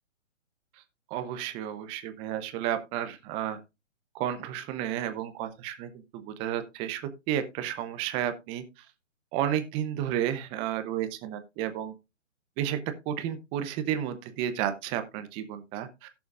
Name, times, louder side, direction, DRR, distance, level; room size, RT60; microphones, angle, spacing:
voice 1, 1.1-3.6 4.1-7.0 7.3-8.8 9.3-11.9 12.6-12.8 13.1-16.1, right 10 dB, 15° right, 9 dB, 0.7 m, -32 dB
17.0 x 7.0 x 2.4 m, 0.25 s
figure-of-eight pair, 135°, 38 cm